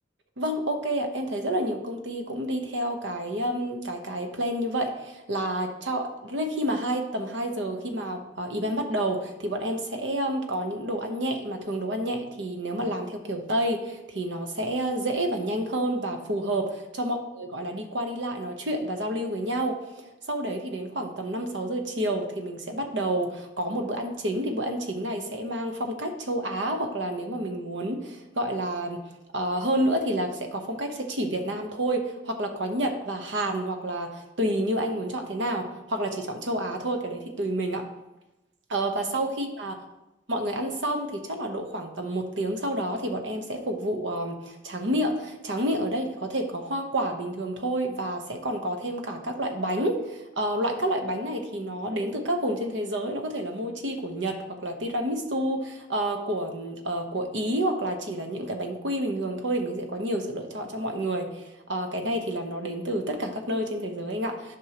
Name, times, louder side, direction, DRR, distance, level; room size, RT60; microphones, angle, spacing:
voice 1, 0.4-19.8 20.3-29.0 29.3-37.9 38.7-39.7 40.3-64.6, right 1 dB, 70° right, 4 dB, 1.0 m, -29 dB
11.0 x 5.4 x 2.9 m, 0.98 s
head